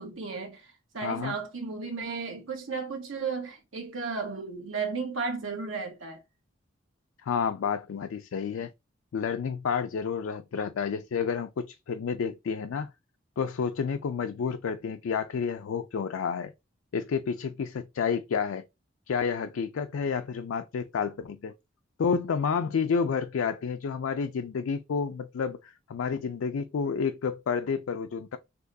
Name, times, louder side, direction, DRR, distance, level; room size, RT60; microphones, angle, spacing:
voice 1, 0.0-6.2, right 4 dB, 85° right, 1.4 m, -34 dB
voice 2, 1.0-1.3 7.2-8.7 9.1-12.9 13.4-16.5 16.9-18.6 19.1-21.5 22.0-28.4, left 6 dB, 85° left, 0.4 m, -30 dB
6.0 x 2.9 x 2.7 m
head